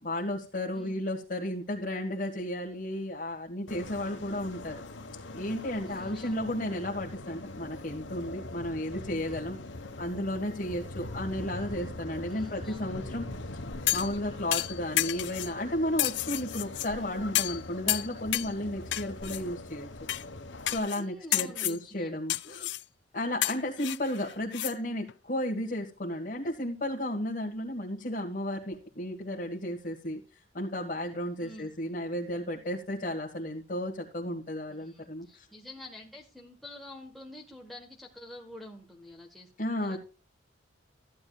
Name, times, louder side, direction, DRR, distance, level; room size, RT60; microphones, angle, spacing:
voice 1, 0.0-4.8 5.3-9.6 10.0-13.6 13.9-19.9 20.7-22.7 23.1-30.2 30.5-35.5 39.6-40.0, left 1 dB, 45° left, -3 dB, 1.7 m, -33 dB
voice 2, 0.7-1.0 5.8-6.4 12.3-13.0 21.0-22.1 31.4-31.7 34.8-39.5 39.8-40.0, left 1 dB, ahead, -1 dB, 1.3 m, -48 dB
sound 1, 3.7-20.8, left 2 dB, 90° left, 1.4 m, -42 dB
sound 2, 13.9-14.2 14.5-15.5 16.0-16.9 17.4-17.6 17.9-18.5 18.9-19.4 20.1-20.2 20.7-21.0 21.3-21.8 22.3-22.8 23.4-24.7 25.1-25.2, left 16 dB, 70° left, 0.4 m, -30 dB
14.0 x 9.4 x 2.4 m, 0.34 s
head